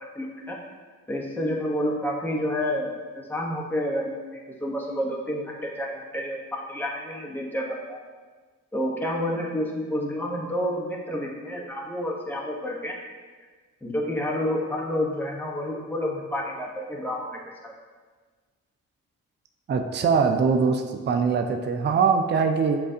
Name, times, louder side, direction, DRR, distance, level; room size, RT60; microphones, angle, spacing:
voice 1, 0.1-0.6 1.1-2.9 3.1-8.0 8.7-13.0 13.8-17.7, left 1 dB, 5° left, -2 dB, 1.0 m, -29 dB
voice 2, 19.7-22.8, right 5 dB, 30° right, 5 dB, 0.4 m, -22 dB
7.3 x 2.5 x 2.7 m, 1.4 s
cardioid pair, 60°, 34 cm